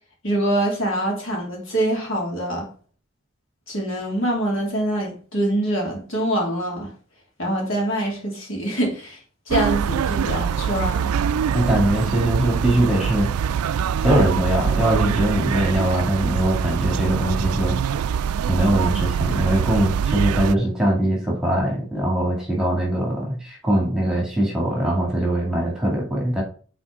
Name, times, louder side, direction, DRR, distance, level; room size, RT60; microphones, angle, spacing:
voice 1, 0.2-2.7 3.7-6.9 7.4-9.2 9.5-11.1, right 1 dB, 65° left, 3.0 m, -24 dB
sound 1, 9.5-20.5, right 7 dB, 85° right, 0.3 m, -24 dB
voice 2, 11.5-13.3 13.9-17.8 18.5-26.4, right 1 dB, 5° right, 2.1 m, -21 dB
6.2 x 4.3 x 6.0 m
head